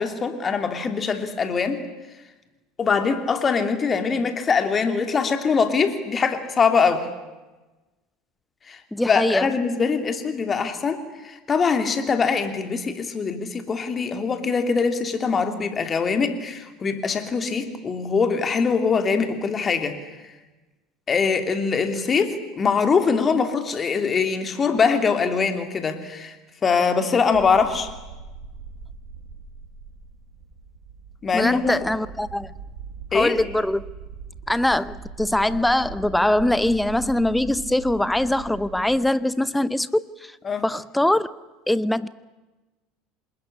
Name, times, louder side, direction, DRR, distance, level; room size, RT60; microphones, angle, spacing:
voice 1, 0.0-1.8 2.8-7.1 8.7-8.8 9.1-20.0 21.1-26.3 26.6-27.9 31.2-31.8 33.1-33.3 40.4-40.6, left 5 dB, 25° left, 7 dB, 2.9 m, -23 dB
voice 2, 8.9-9.5 31.3-32.5 33.1-33.9 34.5-40.3 40.6-41.3 41.7-42.1, left 1 dB, 5° left, 18 dB, 0.8 m, -22 dB
sound 1, 27.3-38.9, right 5 dB, 55° right, 6.5 m, -40 dB
27.0 x 20.5 x 9.9 m, 1.1 s
figure-of-eight pair, 70°, 0 cm